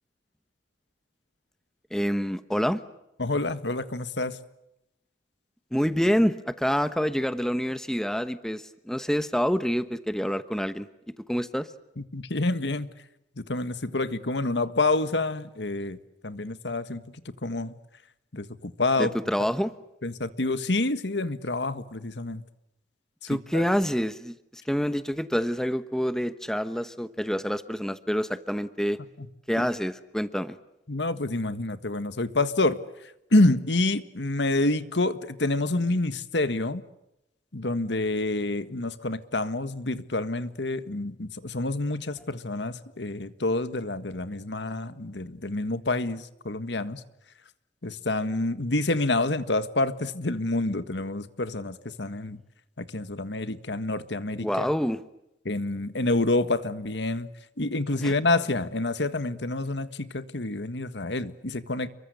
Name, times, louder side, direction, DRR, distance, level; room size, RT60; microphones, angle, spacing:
voice 1, 1.9-2.8 5.7-10.9 11.3-11.7 19.0-19.7 23.3-29.0 29.5-30.6 54.4-55.0 58.0-58.1, equal, 5° left, 12 dB, 1.0 m, -27 dB
voice 2, 3.2-4.4 12.0-12.9 13.4-17.0 17.4-17.8 18.3-19.1 20.0-22.4 23.3-23.6 29.2-29.3 29.6-29.7 30.9-32.8 33.3-36.8 37.5-47.0 47.8-52.4 52.8-54.7 55.4-57.3 57.6-61.9, left 2 dB, 75° left, 12 dB, 1.7 m, -28 dB
30.0 x 23.0 x 8.1 m, 0.85 s
head